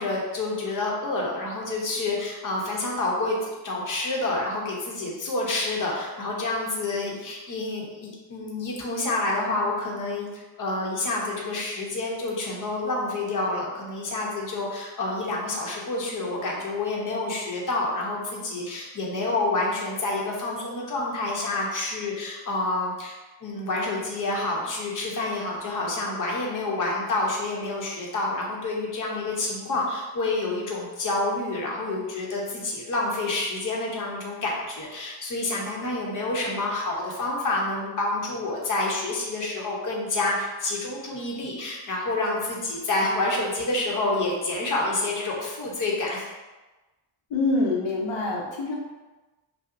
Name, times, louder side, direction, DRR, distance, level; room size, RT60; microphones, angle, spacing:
voice 1, 0.0-3.4 3.6-23.1 23.4-46.3, left 2 dB, 45° left, -3 dB, 0.8 m, -28 dB
voice 2, 47.3-48.8, left 2 dB, 75° left, -2 dB, 0.7 m, -25 dB
5.4 x 2.1 x 2.5 m, 1.1 s
wide cardioid pair, 155°, 45 cm